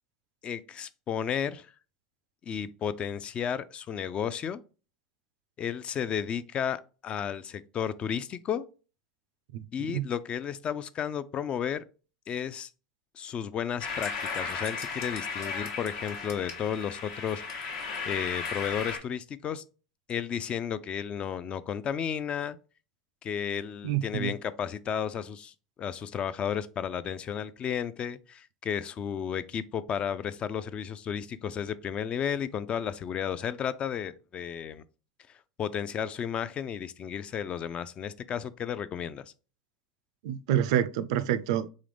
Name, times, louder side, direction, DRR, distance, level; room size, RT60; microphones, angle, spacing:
voice 1, 0.4-1.7 2.4-4.6 5.6-8.6 9.7-11.8 12.3-12.7 13.1-17.4 18.1-19.6 20.1-22.6 23.2-34.8 35.6-39.2, left 8 dB, 35° left, 0.3 m, -33 dB
voice 2, 9.5-10.0 23.8-24.4 40.2-41.7, right 10 dB, 65° right, 0.3 m, -28 dB
sound 1, 13.8-19.0, left 5 dB, 65° left, 1.0 m, -35 dB
3.7 x 3.1 x 3.3 m
hypercardioid pair, 90°, 3 cm